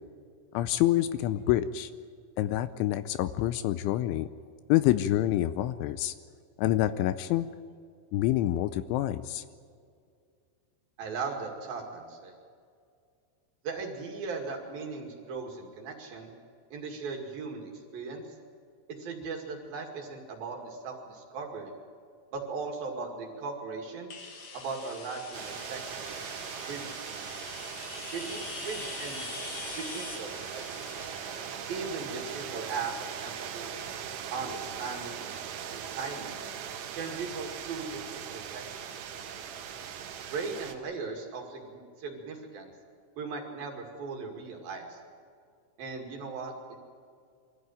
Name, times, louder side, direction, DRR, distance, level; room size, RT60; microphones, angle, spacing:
voice 1, 0.5-1.9 2.4-4.3 4.7-6.1 6.6-7.5 8.1-9.4, left 14 dB, 80° left, 13 dB, 2.9 m, -27 dB
voice 2, 11.0-12.3 13.6-16.3 16.7-18.2 19.0-21.7 22.3-24.1 24.5-25.8 26.7-26.9 28.1-29.3 29.7-30.6 30.9-31.0 31.7-33.7 34.3-35.2 35.7-36.5 36.9-38.9 40.3-42.7 43.2-45.0 45.8-46.8, right 4 dB, 55° right, 2 dB, 3.5 m, -38 dB
sound 1, 24.1-33.7, left 4 dB, 50° left, 3.0 m, -44 dB
sound 2, 25.3-40.8, right 8 dB, 85° right, 4.1 m, -40 dB
24.0 x 15.0 x 9.1 m, 2.3 s
omnidirectional pair, 5.7 m